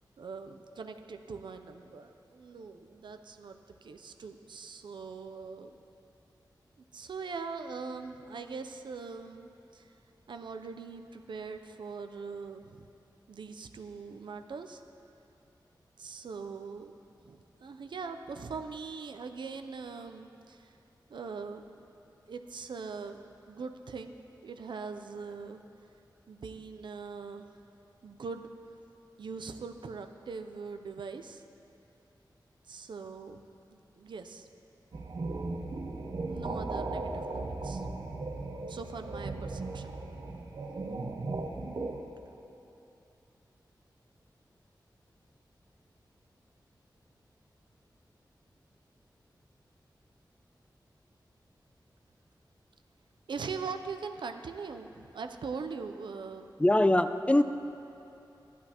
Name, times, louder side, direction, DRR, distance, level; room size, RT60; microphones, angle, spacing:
voice 1, 0.2-5.8 6.9-9.9 10.3-12.9 13.3-14.8 16.0-17.0 17.2-20.7 21.1-21.9 22.3-24.1 24.4-25.6 26.3-27.5 28.0-28.5 29.2-31.4 32.6-34.5 36.3-37.9 38.7-40.3 53.3-56.6, right 5 dB, 90° right, 7 dB, 0.5 m, -42 dB
sound 1, 34.9-42.0, right 3 dB, 65° right, 0.8 m, -37 dB
voice 2, 56.6-57.4, left 1 dB, 15° left, 10 dB, 0.3 m, -22 dB
14.5 x 11.0 x 2.9 m, 2.8 s
wide cardioid pair, 80°, 8 cm